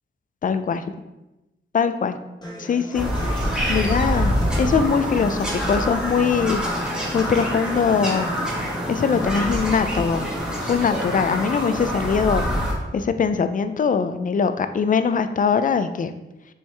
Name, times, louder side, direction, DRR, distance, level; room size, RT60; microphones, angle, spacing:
voice 1, 0.4-0.8 1.7-2.2 2.6-3.1 3.3-8.3 8.9-10.3 10.6-12.5 12.9-16.1, left 6 dB, 40° left, 10 dB, 0.4 m, -22 dB
Human voice / Acoustic guitar, 2.4-10.4, equal, 20° left, 1.2 m, -37 dB
Bird vocalization bird call bird song, 2.9-12.7, equal, 5° right, 1.1 m, -25 dB
6.2 x 4.6 x 3.3 m, 1.0 s
wide cardioid pair, 165°, 20 cm